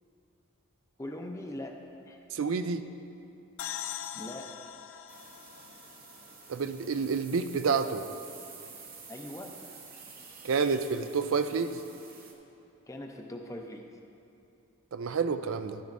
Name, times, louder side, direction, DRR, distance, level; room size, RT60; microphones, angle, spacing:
voice 1, 1.0-1.8 2.1-2.2 4.1-4.5 9.1-9.5 12.9-13.9, left 1 dB, 15° left, 2 dB, 0.6 m, -40 dB
voice 2, 2.3-2.8 6.5-8.0 10.4-11.8 14.9-15.8, right 5 dB, 70° right, 10 dB, 0.4 m, -29 dB
sound 1, 3.6-7.1, left 10 dB, 65° left, 0.4 m, -42 dB
sound 2, 5.1-12.3, right 5 dB, 40° right, 0.8 m, -50 dB
12.5 x 10.5 x 2.6 m, 2.7 s
head